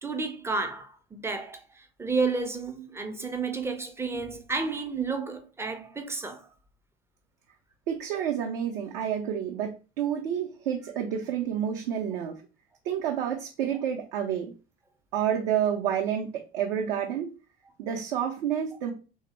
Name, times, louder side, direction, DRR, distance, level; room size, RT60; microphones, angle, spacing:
voice 1, 0.0-6.5, right 4 dB, 10° right, 0.4 m, -31 dB
voice 2, 7.9-12.4 12.8-14.5 15.1-17.3 17.8-18.9, right 9 dB, 60° right, 0.6 m, -29 dB
3.1 x 2.0 x 3.1 m
figure-of-eight pair, 65°, 31 cm